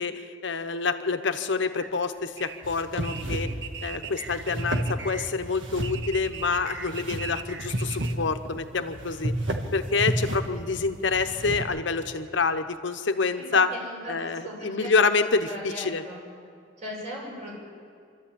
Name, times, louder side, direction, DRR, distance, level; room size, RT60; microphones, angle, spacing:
voice 1, 0.0-3.5 3.8-9.3 9.7-13.7 14.1-16.0, left 4 dB, 70° left, 8 dB, 0.9 m, -27 dB
sound 1, 1.8-8.1, right 6 dB, 60° right, 1.1 m, -40 dB
sound 2, 2.6-11.6, right 1 dB, 75° right, 1.7 m, -32 dB
voice 2, 13.4-14.9 15.5-16.2 16.8-17.5, equal, 35° right, -3 dB, 7.1 m, -38 dB
26.0 x 13.0 x 8.7 m, 2.3 s
head